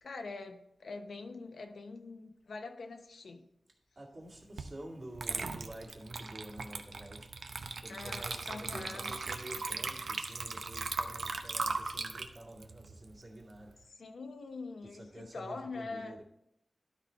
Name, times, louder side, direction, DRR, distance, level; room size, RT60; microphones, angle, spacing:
voice 1, 0.0-3.5 7.9-9.2 14.0-16.2, left 3 dB, 85° left, 5 dB, 0.7 m, -44 dB
voice 2, 4.0-7.3 7.8-13.7 14.9-16.2, right 1 dB, 45° right, -4 dB, 2.2 m, -48 dB
Water / Liquid, 4.6-4.7 5.1-13.7, right 4 dB, 75° right, 0.6 m, -38 dB
12.0 x 4.2 x 4.4 m, 0.80 s
wide cardioid pair, 105°, 0 cm